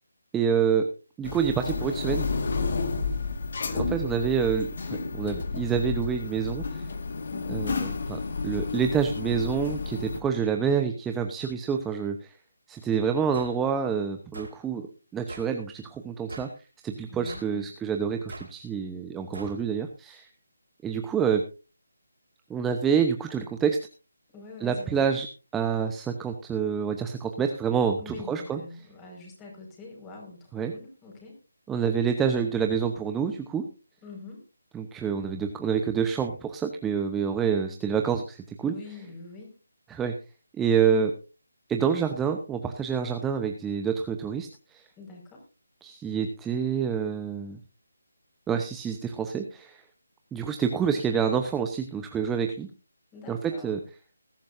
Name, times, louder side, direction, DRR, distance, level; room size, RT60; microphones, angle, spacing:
voice 1, 0.3-0.9 1.2-2.3 3.7-6.9 7.5-12.3 12.7-16.5 16.8-20.3 20.8-21.4 22.5-23.8 24.6-25.3 25.5-28.6 30.5-30.7 31.7-33.6 34.7-38.8 39.9-40.1 40.6-41.1 41.7-44.8 45.8-47.6 48.5-49.8 50.3-52.7 53.3-53.8, right 7 dB, 10° right, 5 dB, 0.8 m, -27 dB
sound 1, 1.2-10.2, left 4 dB, 50° left, 1.8 m, -31 dB
voice 2, 7.3-7.7 12.9-13.4 17.1-17.7 24.3-25.1 28.0-31.4 34.0-34.4 38.6-39.5 45.0-45.5 53.1-53.8, left 3 dB, 15° left, 0 dB, 5.2 m, -45 dB
sound 2, 13.3-13.6 14.3-14.6 15.3-15.5 16.3-16.6 17.3-17.5 18.3-18.5 19.3-19.6, right 1 dB, 70° right, 4.8 m, -41 dB
20.5 x 11.5 x 2.6 m, 0.32 s
figure-of-eight pair, 155°, 0 cm